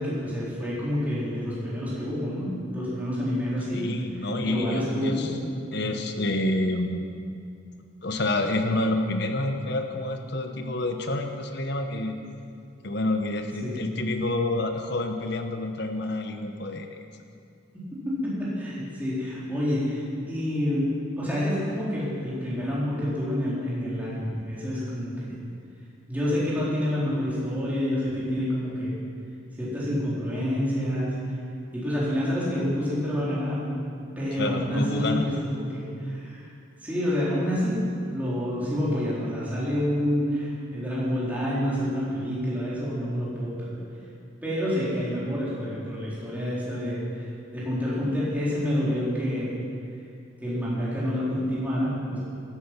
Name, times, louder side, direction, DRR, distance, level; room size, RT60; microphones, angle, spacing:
voice 1, 0.0-3.9 4.4-5.2 5.8-5.9 13.6-13.8 17.7-20.9 21.2-25.3 26.1-28.9 29.6-31.1 31.7-33.8 34.2-36.5 36.8-37.8 38.0-43.8 44.4-47.3 47.5-49.5 50.4-52.2, equal, 10° right, -9 dB, 4.0 m, -28 dB
voice 2, 3.7-5.4 5.7-7.0 8.0-12.2 12.8-17.0 34.4-35.3, left 2 dB, 55° left, 6 dB, 1.0 m, -28 dB
14.5 x 12.5 x 6.1 m, 2.4 s
head